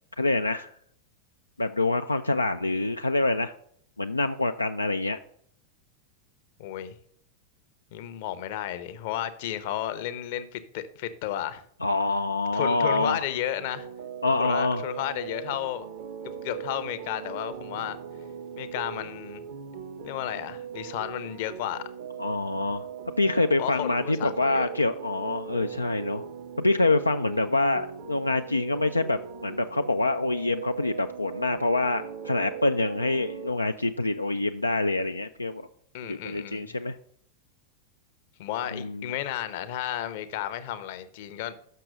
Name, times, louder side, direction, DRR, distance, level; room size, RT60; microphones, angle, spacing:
voice 1, 0.2-0.7 1.6-3.5 4.0-5.2 11.8-13.2 14.2-14.8 22.2-22.9 23.2-26.2 26.6-35.7 36.0-37.0 38.7-39.1, left 2 dB, 85° left, 0.3 m, -26 dB
voice 2, 6.6-6.9 7.9-11.6 12.5-13.9 14.4-15.9 16.4-18.0 18.6-19.4 20.0-21.8 23.6-24.7 35.9-36.7 38.4-41.5, left 11 dB, 50° left, 0.7 m, -33 dB
sound 1, 13.6-33.5, right 8 dB, 50° right, 0.7 m, -40 dB
6.6 x 6.0 x 6.3 m
figure-of-eight pair, 90°, 0 cm